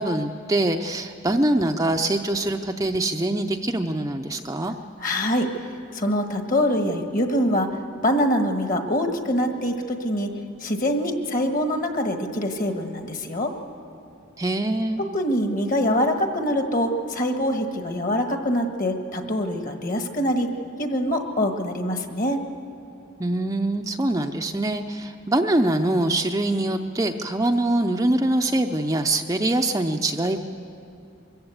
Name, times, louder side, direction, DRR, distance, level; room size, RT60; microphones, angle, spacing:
voice 1, 0.0-4.7 14.4-15.0 23.2-30.4, right 1 dB, 15° right, 4 dB, 0.5 m, -24 dB
voice 2, 5.0-5.5 5.9-7.7 8.0-10.3 10.6-13.5 15.0-22.4, equal, 40° left, 5 dB, 1.5 m, -24 dB
23.5 x 15.0 x 8.1 m, 2.6 s
head